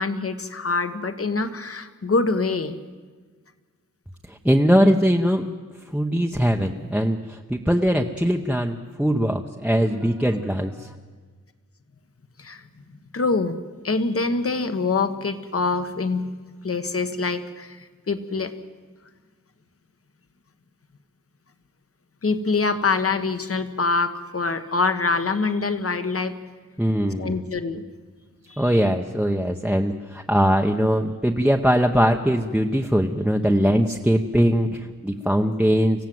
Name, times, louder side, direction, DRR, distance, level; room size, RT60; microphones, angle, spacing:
voice 1, 0.0-2.8 12.4-12.6 13.1-13.6 13.8-16.3 16.6-18.5 22.2-26.4 27.2-27.8 28.5-28.7, left 3 dB, 45° left, 9 dB, 1.4 m, -25 dB
voice 2, 4.3-5.5 5.9-10.9 26.8-27.5 28.6-36.1, equal, 5° right, 2 dB, 0.9 m, -21 dB
25.5 x 16.0 x 7.8 m, 1.4 s
wide cardioid pair, 100°, 31 cm